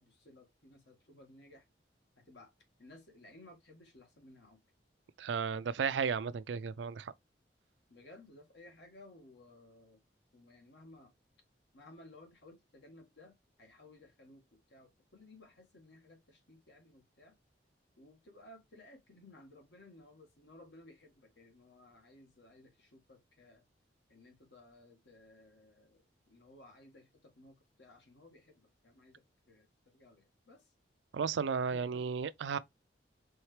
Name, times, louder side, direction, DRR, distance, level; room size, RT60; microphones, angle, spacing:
voice 1, 0.0-1.6 2.2-2.5 2.8-4.6 7.9-10.0 10.3-11.1 11.7-17.3 18.0-23.6 24.1-30.7 31.7-32.0, left 2 dB, 75° left, 1.6 m, -58 dB
voice 2, 5.2-7.1 31.1-32.6, right 6 dB, 85° right, 0.4 m, -34 dB
4.5 x 3.2 x 3.1 m
head